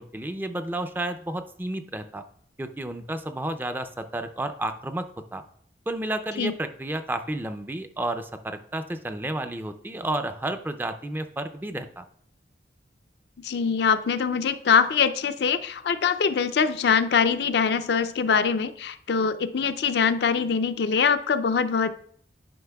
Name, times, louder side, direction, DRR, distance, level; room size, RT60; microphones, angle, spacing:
voice 1, 0.0-2.2 2.6-5.4 5.9-12.0, right 1 dB, 10° right, 8 dB, 0.4 m, -31 dB
voice 2, 13.4-21.9, left 6 dB, 70° left, 11 dB, 0.4 m, -23 dB
11.5 x 5.3 x 2.3 m, 0.62 s
head